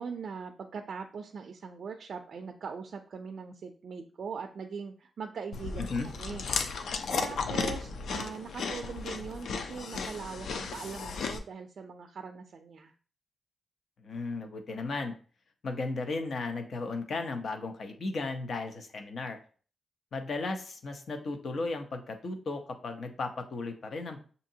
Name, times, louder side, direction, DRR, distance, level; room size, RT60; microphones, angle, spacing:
voice 1, 0.0-12.9, right 5 dB, 60° right, 4 dB, 0.4 m, -41 dB
Chewing mastication, 5.5-11.4, left 5 dB, 90° left, 0.5 m, -35 dB
voice 2, 14.0-15.1 15.6-19.4 20.1-24.2, left 3 dB, 55° left, 5 dB, 0.7 m, -35 dB
6.4 x 2.7 x 2.7 m, 0.40 s
wide cardioid pair, 155°, 0 cm